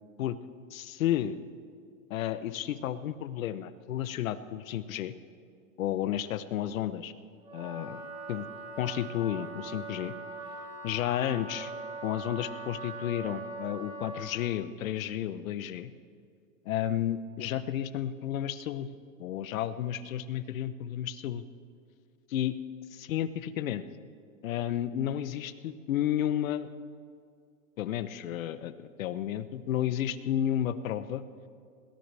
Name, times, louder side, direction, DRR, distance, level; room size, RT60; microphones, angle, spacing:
voice 1, 0.7-1.4 2.1-5.1 5.8-7.1 7.5-8.0 8.3-8.5 8.8-10.1 10.8-11.7 12.0-15.9 16.6-18.9 19.2-21.4 22.3-22.5 23.0-23.8 24.4-26.7 27.8-31.2, left 11 dB, 80° left, 14 dB, 0.9 m, -32 dB
Wind instrument woodwind instrument, 7.4-14.5, right 2 dB, 15° right, 2.8 m, -41 dB
21.0 x 18.0 x 3.4 m, 2.2 s
supercardioid pair, 135°, 40 cm